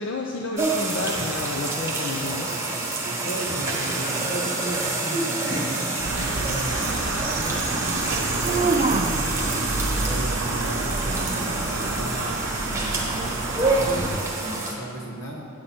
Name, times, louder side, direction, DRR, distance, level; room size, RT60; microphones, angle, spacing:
voice 1, 0.0-2.5, left 2 dB, 60° left, 0 dB, 0.6 m, -30 dB
sound 1, 0.6-14.7, right 2 dB, 15° right, 1.2 m, -27 dB
sound 2, 1.8-9.5 12.6-12.7, right 4 dB, 30° right, 0.3 m, -32 dB
voice 2, 2.5-7.7 8.5-14.2 14.4-15.5, right 1 dB, 85° left, -2 dB, 1.7 m, -36 dB
sound 3, 6.0-14.2, right 2 dB, 65° right, 0.7 m, -29 dB
9.2 x 7.7 x 4.4 m, 2.2 s
head